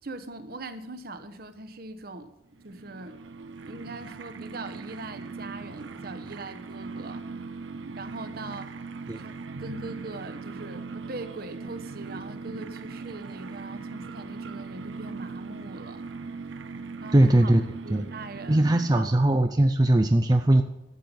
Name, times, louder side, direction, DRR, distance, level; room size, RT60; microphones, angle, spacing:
voice 1, 0.0-2.3 2.6-3.2 3.6-7.5 7.9-8.7 9.2-9.3 9.6-16.0 17.0-17.5 17.8-19.3, right 2 dB, 50° right, 10 dB, 1.0 m, -41 dB
sound 1, 2.6-19.2, right 4 dB, 80° right, 0.6 m, -40 dB
voice 2, 17.1-17.6 17.9-18.1 18.5-20.6, right 1 dB, 20° right, 6 dB, 0.5 m, -20 dB
12.0 x 7.6 x 6.9 m, 0.93 s
head